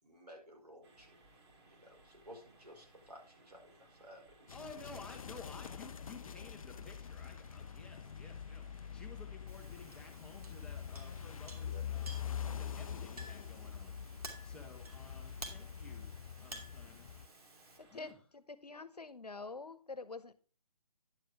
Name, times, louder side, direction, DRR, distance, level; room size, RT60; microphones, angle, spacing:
voice 1, 0.0-1.2 1.6-4.6 11.6-11.9 14.4-14.6, equal, 90° right, 5.1 m, -56 dB
night ambience at home, 0.8-18.1, right 2 dB, 45° right, 2.5 m, -64 dB
sound 1, 4.5-17.3, left 8 dB, 60° left, 0.4 m, -45 dB
voice 2, 4.5-16.1 16.4-17.1 17.9-18.2, left 3 dB, 5° left, 1.0 m, -54 dB
Chink clink, 9.5-17.8, right 2 dB, 70° right, 2.6 m, -53 dB
voice 3, 17.8-20.3, left 3 dB, 80° left, 1.0 m, -46 dB
10.5 x 7.7 x 3.5 m
figure-of-eight pair, 140°, 20 cm